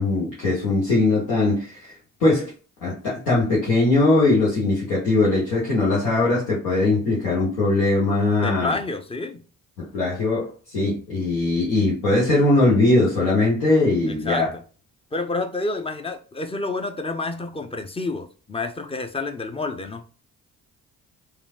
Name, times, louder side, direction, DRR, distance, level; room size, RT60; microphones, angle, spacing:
voice 1, 0.0-1.9 2.2-2.5 2.8-8.8 9.8-14.5, left 2 dB, 90° left, 1.0 m, -20 dB
voice 2, 8.3-9.4 14.1-14.6 15.1-20.1, left 3 dB, 15° left, 0.4 m, -29 dB
3.2 x 2.4 x 2.3 m
hypercardioid pair, 45°, 41 cm